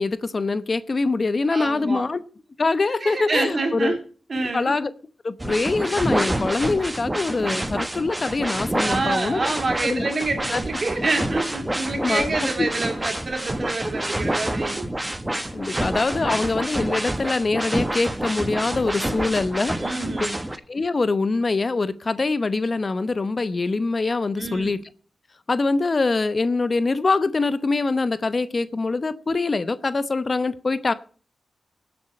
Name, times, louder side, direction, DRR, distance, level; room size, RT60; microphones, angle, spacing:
voice 1, 0.0-2.2 2.6-4.0 4.5-4.9 5.2-9.4 9.8-10.1 10.5-10.6 12.0-12.2 12.6-12.7 15.5-19.8 20.7-24.8 25.5-30.9, left 3 dB, 45° left, 0.9 m, -24 dB
voice 2, 1.5-2.1 3.0-4.0 4.3-4.8 8.8-14.9 19.8-20.4 24.4-24.7, right 3 dB, 50° right, 3.8 m, -27 dB
sound 1, 5.4-20.6, right 1 dB, 15° right, 1.5 m, -28 dB
19.0 x 8.0 x 4.3 m
cardioid pair, 60°, 0 cm